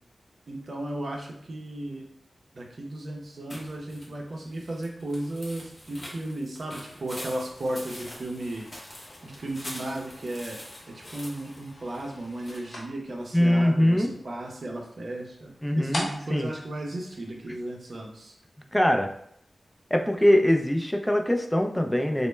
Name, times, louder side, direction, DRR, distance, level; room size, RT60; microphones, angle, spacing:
voice 1, 0.5-2.0 2.5-8.8 9.2-10.6 10.9-18.4, right 1 dB, 60° right, 0 dB, 0.5 m, -35 dB
sound 1, 3.5-12.6, left 1 dB, 30° left, 0.7 m, -45 dB
sound 2, 7.4-17.8, left 1 dB, 60° left, 0.8 m, -44 dB
voice 2, 13.3-14.1 15.6-16.5 18.7-19.1 19.9-22.3, left 1 dB, 10° left, 3 dB, 0.3 m, -22 dB
2.1 x 2.0 x 3.1 m, 0.67 s
wide cardioid pair, 80°, 0 cm